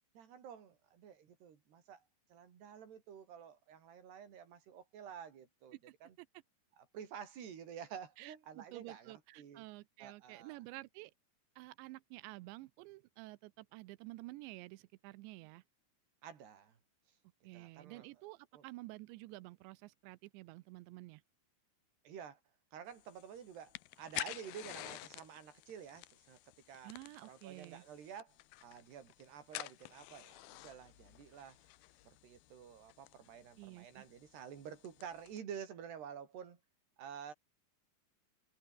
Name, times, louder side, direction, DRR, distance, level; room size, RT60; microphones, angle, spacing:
voice 1, 0.2-2.0 2.3-6.2 6.9-9.6 10.0-10.6 16.2-16.8 17.5-18.1 18.5-18.6 22.1-22.4 22.7-26.4 26.7-26.9 27.3-28.4 28.6-31.6 32.0-36.6 37.0-37.3, right 8 dB, 70° right, 5.3 m, -50 dB
voice 2, 5.9-6.3 8.2-11.1 11.6-15.6 17.4-21.2 26.8-27.8 33.6-34.1, right 20 dB, 85° right, 3.0 m, -51 dB
sound 1, 22.9-35.4, left 19 dB, 80° left, 2.2 m, -50 dB
omnidirectional pair, 5.1 m